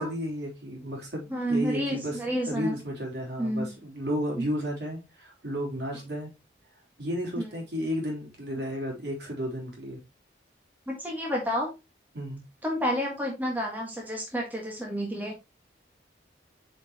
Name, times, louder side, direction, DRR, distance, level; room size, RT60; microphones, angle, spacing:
voice 1, 0.0-6.3 7.0-10.0 12.1-12.4, equal, 65° right, 3.4 m, -33 dB
voice 2, 1.3-2.8 3.4-3.7 4.4-4.5 7.4-7.5 10.9-11.7 12.6-15.3, equal, 10° right, 1.6 m, -30 dB
7.8 x 5.1 x 2.9 m
head